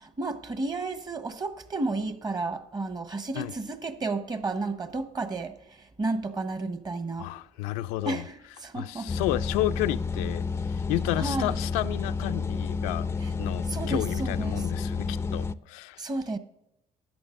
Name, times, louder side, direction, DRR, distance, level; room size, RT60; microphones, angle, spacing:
voice 1, 0.0-7.3 8.1-9.1 11.2-11.5 13.2-13.3 13.7-14.6 16.0-16.4, right 3 dB, 30° right, 1.0 m, -32 dB
voice 2, 7.2-8.2 8.8-10.4 10.9-13.1 13.4-16.0, left 15 dB, 90° left, 0.4 m, -31 dB
sound 1, 9.1-15.6, left 4 dB, 20° left, 0.3 m, -30 dB
13.5 x 9.0 x 2.5 m
supercardioid pair, 90°, 14 cm